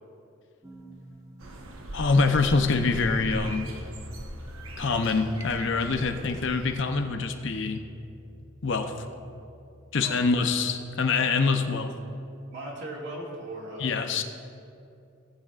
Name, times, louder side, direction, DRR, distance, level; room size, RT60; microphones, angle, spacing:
sound 1, 0.6-2.8, equal, 15° right, 0.9 m, -48 dB
sound 2, 1.4-6.8, right 1 dB, 90° right, 1.1 m, -40 dB
voice 1, 1.9-3.7 4.8-7.8 8.6-8.9 9.9-11.9 13.8-14.2, left 4 dB, 60° left, 6 dB, 0.6 m, -25 dB
sound 3, 2.9-12.1, left 1 dB, 10° left, 0.5 m, -48 dB
voice 2, 12.5-14.0, right 1 dB, 55° right, -3 dB, 2.2 m, -38 dB
18.5 x 8.9 x 2.5 m, 2.6 s
head